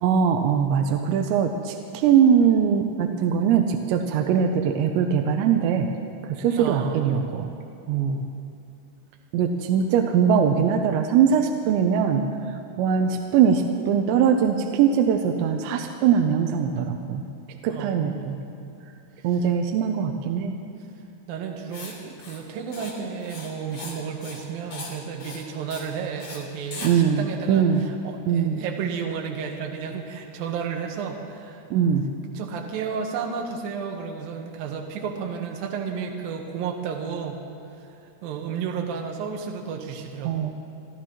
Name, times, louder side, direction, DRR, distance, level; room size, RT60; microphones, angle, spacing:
voice 1, 0.0-5.9 6.2-7.5 7.9-8.2 9.3-12.3 12.8-17.2 17.6-18.4 19.2-20.6 26.8-27.8 28.3-28.6 31.7-32.1 40.2-40.5, right 7 dB, 85° right, 4 dB, 3.0 m, -21 dB
voice 2, 6.6-7.4 17.7-18.5 19.3-19.5 21.3-31.6 32.3-37.4 38.2-40.3, right 6 dB, 70° right, 1 dB, 2.3 m, -32 dB
Writing, 21.7-21.9 22.2-22.4 22.7-22.9 23.2-24.0 24.2-24.4 24.7-24.9 25.2-25.4 25.7-25.9 26.2-26.4 26.7-26.9, left 3 dB, 50° left, 3.1 m, -39 dB
27.5 x 14.0 x 3.0 m, 2.7 s
omnidirectional pair, 5.2 m